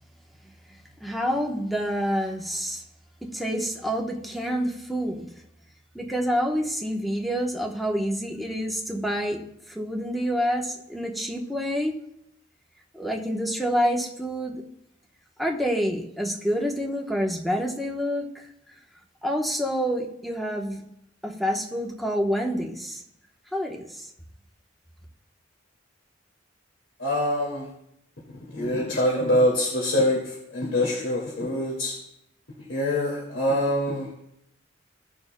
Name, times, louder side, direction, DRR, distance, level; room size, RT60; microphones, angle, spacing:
voice 1, 1.0-2.8 3.2-5.3 5.9-9.4 9.7-12.0 12.9-14.6 15.4-18.5 19.2-20.8 21.2-23.0 23.5-24.1, equal, ahead, -1 dB, 1.0 m, -27 dB
voice 2, 27.0-27.7 28.5-31.9 32.7-34.1, left 1 dB, 80° left, -3 dB, 2.3 m, -24 dB
16.5 x 6.9 x 2.2 m, 0.78 s
head